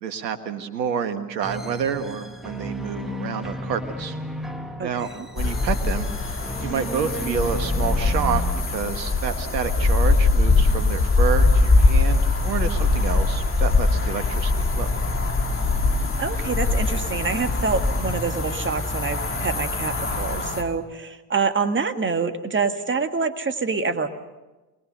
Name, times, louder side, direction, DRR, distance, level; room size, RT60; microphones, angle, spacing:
voice 1, 0.0-4.2 4.8-5.1 5.3-8.4 8.7-14.9, right 7 dB, 80° right, 9 dB, 1.7 m, -29 dB
sound 1, 1.4-9.1, equal, ahead, 1.9 m, -34 dB
voice 2, 4.8-5.3 16.2-24.1, right 4 dB, 25° right, 8 dB, 1.8 m, -26 dB
sound 2, 5.4-20.6, left 3 dB, 25° left, 2.9 m, -22 dB
24.0 x 20.5 x 6.7 m, 1.1 s
hypercardioid pair, 65°, 50 cm